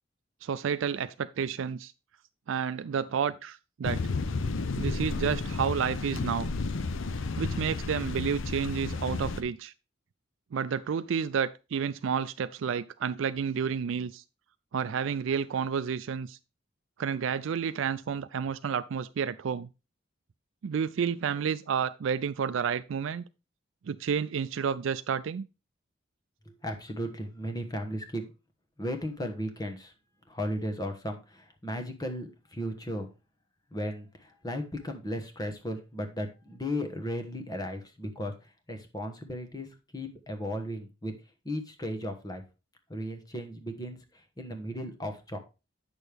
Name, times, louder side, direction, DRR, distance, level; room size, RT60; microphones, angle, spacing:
voice 1, 0.4-1.9 2.5-4.0 4.8-6.5 7.4-9.7 10.5-14.2 14.7-16.4 17.0-19.7 20.6-23.2 23.9-25.5, right 7 dB, 75° right, 0.4 m, -30 dB
sound 1, 3.8-9.4, left 3 dB, 75° left, 0.6 m, -32 dB
voice 2, 26.6-28.3 28.8-29.9 30.3-33.1 33.7-39.7 39.9-41.1 41.4-42.4 42.9-45.4, equal, 20° left, 1.2 m, -35 dB
8.9 x 6.4 x 3.4 m
head